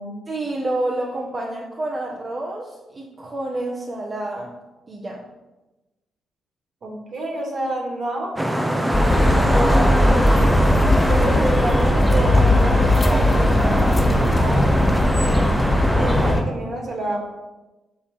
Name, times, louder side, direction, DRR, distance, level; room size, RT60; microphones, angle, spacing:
voice 1, 0.3-4.5 4.9-5.2 11.0-11.2 15.9-16.1, right 2 dB, 40° right, -2 dB, 1.3 m, -29 dB
voice 2, 6.8-10.5 11.1-15.2 15.9-17.2, right 1 dB, 55° right, 0 dB, 2.4 m, -29 dB
sound 1, 8.4-16.3, equal, 10° right, 0.9 m, -24 dB
sound 2, 8.9-16.4, left 1 dB, 25° left, 2.1 m, -18 dB
6.6 x 5.6 x 5.5 m, 1.1 s
hypercardioid pair, 45°, 0 cm